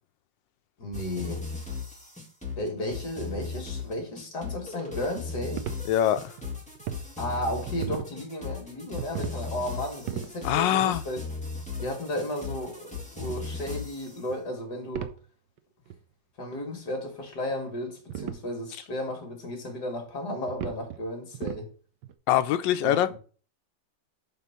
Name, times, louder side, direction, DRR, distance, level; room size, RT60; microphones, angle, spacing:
voice 1, 0.8-1.4 2.6-5.6 7.2-11.2 11.8-15.1 16.4-21.7 22.8-23.2, left 1 dB, 60° left, 2.5 m, -34 dB
sound 1, 0.9-14.2, left 4 dB, 5° left, 1.8 m, -37 dB
sound 2, 5.6-7.0 7.4-8.1 8.8-9.4 9.7-10.3 10.8-10.9 12.1-12.2 13.2-13.3 14.3-14.5 14.9-15.2 15.6-15.7 15.9-16.0 16.5-16.6 17.2-17.6 18.1-18.5 19.1-19.2 19.7-19.8 20.5-21.0 21.3-21.7 22.0-22.1, right 10 dB, 70° right, 1.2 m, -36 dB
voice 2, 5.9-6.3 10.4-11.0 22.3-23.1, left 11 dB, 90° left, 1.3 m, -23 dB
7.2 x 3.7 x 5.6 m
omnidirectional pair, 2.0 m